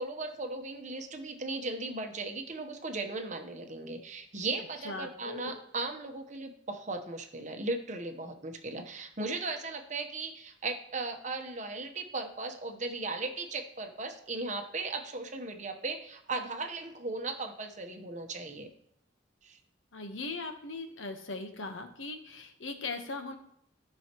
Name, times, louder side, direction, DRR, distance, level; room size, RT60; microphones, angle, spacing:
voice 1, 0.0-18.7 19.4-19.6, right 3 dB, 40° right, 5 dB, 0.9 m, -37 dB
voice 2, 4.8-5.5 19.9-23.4, left 3 dB, 85° left, 6 dB, 1.1 m, -39 dB
13.5 x 5.6 x 3.0 m, 0.71 s
head